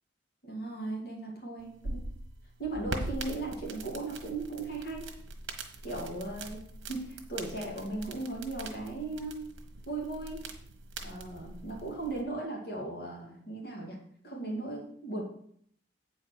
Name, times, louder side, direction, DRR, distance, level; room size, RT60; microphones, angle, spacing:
voice 1, 0.4-2.0 2.6-5.0 5.8-9.5 9.9-10.4 11.0-14.0 14.2-15.2, right 2 dB, 50° left, -2 dB, 2.4 m, -37 dB
sound 1, 1.6-12.2, right 2 dB, 90° right, 1.3 m, -42 dB
8.5 x 4.5 x 6.3 m, 0.64 s
head